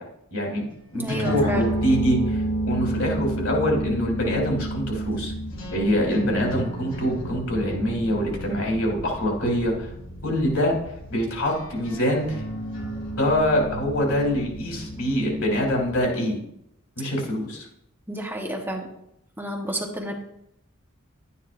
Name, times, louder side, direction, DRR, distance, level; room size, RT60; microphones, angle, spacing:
voice 1, 0.3-0.6 0.9-5.3 5.7-9.9 10.2-10.8 11.1-12.4 13.2-16.4 17.0-17.7, equal, 85° left, 0 dB, 3.5 m, -24 dB
sound 1, 0.9-16.1, right 1 dB, 60° left, 2.5 m, -32 dB
voice 2, 0.9-1.7 18.1-18.9 19.4-20.2, equal, 10° right, 0 dB, 1.1 m, -30 dB
11.5 x 9.5 x 2.6 m, 0.77 s
head